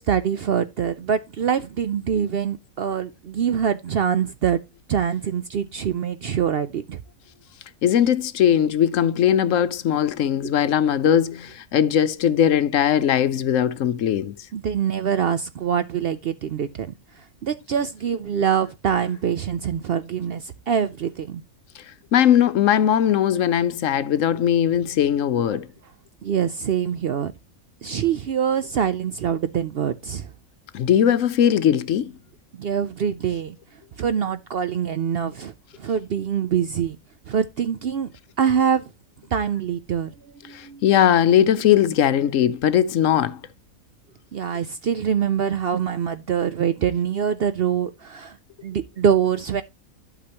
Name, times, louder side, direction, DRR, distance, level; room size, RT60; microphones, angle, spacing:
voice 1, 0.0-4.6 4.9-7.0 14.5-16.9 17.4-21.4 26.2-27.3 27.8-30.3 32.6-33.6 34.0-35.5 35.8-37.0 37.3-38.1 38.4-38.8 39.3-40.1 40.4-40.8 44.3-48.4 48.6-49.6, right 8 dB, 60° right, 0.6 m, -24 dB
voice 2, 7.8-14.3 22.1-25.7 30.7-32.2 40.5-43.4, left 9 dB, 70° left, 1.0 m, -19 dB
12.0 x 6.0 x 2.9 m
omnidirectional pair, 1.5 m